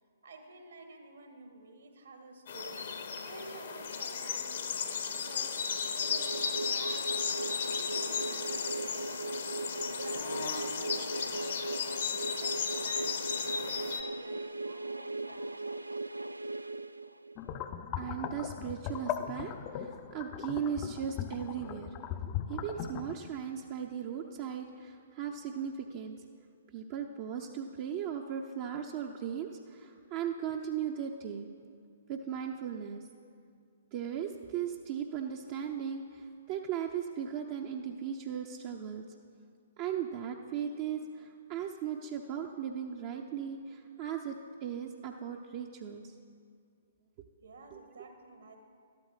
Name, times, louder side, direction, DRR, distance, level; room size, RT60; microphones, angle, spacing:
voice 1, 0.2-7.2 7.5-9.5 9.9-12.0 12.4-16.0 47.4-48.6, right 3 dB, 70° right, 4 dB, 1.8 m, -51 dB
sound 1, 2.5-14.0, left 6 dB, 60° left, 1.0 m, -35 dB
sound 2, 5.7-17.5, right 2 dB, 90° right, 0.3 m, -39 dB
sound 3, 17.4-23.1, left 9 dB, 30° left, 0.5 m, -38 dB
voice 2, 18.0-21.9 22.5-26.2 26.7-31.5 32.1-33.0 33.9-39.0 39.8-46.1 47.7-47.8, right 8 dB, 40° right, 2 dB, 0.7 m, -37 dB
12.5 x 12.0 x 4.9 m, 2.2 s
figure-of-eight pair, 120°, 0 cm